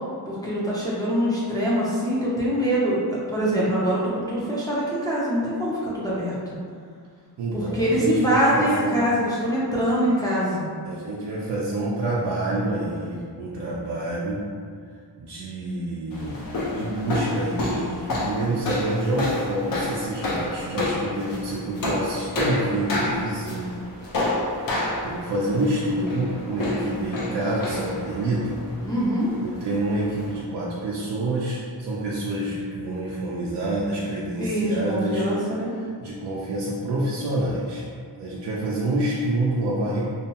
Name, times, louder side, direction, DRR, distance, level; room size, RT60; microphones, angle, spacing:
voice 1, 0.3-6.3 7.5-10.7 28.8-29.3 34.4-35.7, equal, 10° left, -8 dB, 0.4 m, -24 dB
voice 2, 7.4-9.0 9.7-9.8 10.8-14.4 15.2-16.4 16.7-23.8 25.0-28.6 29.4-35.3 36.0-37.8 38.1-40.0, right 1 dB, 90° right, -6 dB, 0.5 m, -27 dB
sound 1, 16.1-30.4, left 2 dB, 55° left, 0.6 m, -29 dB
2.7 x 2.2 x 2.7 m, 2.1 s
wide cardioid pair, 150°, 41 cm